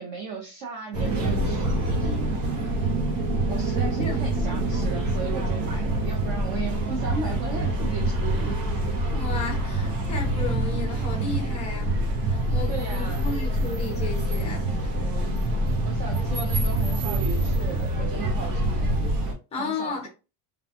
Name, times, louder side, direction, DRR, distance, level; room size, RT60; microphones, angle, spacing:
voice 1, 0.0-2.3 3.4-8.6 12.7-13.2 15.8-19.0 19.6-20.1, right 4 dB, 45° right, 0.5 m, -36 dB
sound 1, 0.9-19.3, right 1 dB, 85° right, 0.9 m, -26 dB
voice 2, 9.1-11.9 12.2-14.9 19.5-20.1, left 4 dB, 15° left, 0.4 m, -34 dB
2.4 x 2.2 x 2.6 m
cardioid pair, 165°, 46 cm